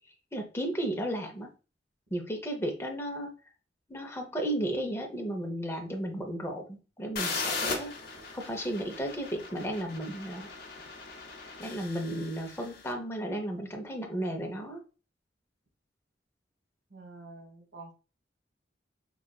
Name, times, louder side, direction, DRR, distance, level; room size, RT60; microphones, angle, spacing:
voice 1, 0.3-1.5 2.1-3.3 3.9-7.9 8.3-10.5 11.6-14.8, right 1 dB, 15° left, 2 dB, 0.6 m, -34 dB
sound 1, 7.2-12.8, left 4 dB, 55° left, 0.7 m, -38 dB
voice 2, 16.9-17.9, right 3 dB, 90° right, 2 dB, 1.2 m, -47 dB
4.0 x 2.3 x 2.3 m, 0.33 s
head